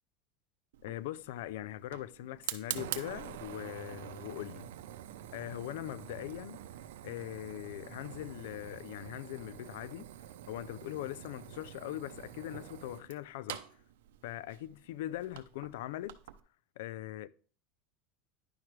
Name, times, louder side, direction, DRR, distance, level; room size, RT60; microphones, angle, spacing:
Fire, 0.7-16.4, right 12 dB, 85° right, 0.6 m, -46 dB
voice 1, 0.8-4.7 5.3-6.6 7.0-10.1 10.5-13.6 14.2-16.1 16.8-17.3, left 14 dB, 80° left, 0.4 m, -41 dB
10.5 x 6.0 x 3.2 m
supercardioid pair, 120°, 0 cm